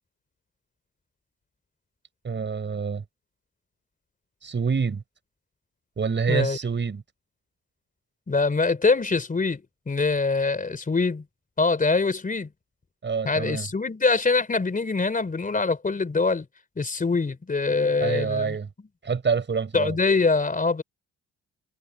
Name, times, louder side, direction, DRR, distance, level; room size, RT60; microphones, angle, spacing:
voice 1, 2.2-3.0 4.4-5.0 6.0-7.0 13.0-13.7 18.0-18.7 19.0-20.0, right 5 dB, 40° right, 6.8 m, -26 dB
voice 2, 6.3-6.6 8.3-11.2 11.6-12.5 13.2-16.5 16.8-18.6 19.7-20.8, left 4 dB, 25° left, 4.1 m, -24 dB
cardioid pair, 90°, 30 cm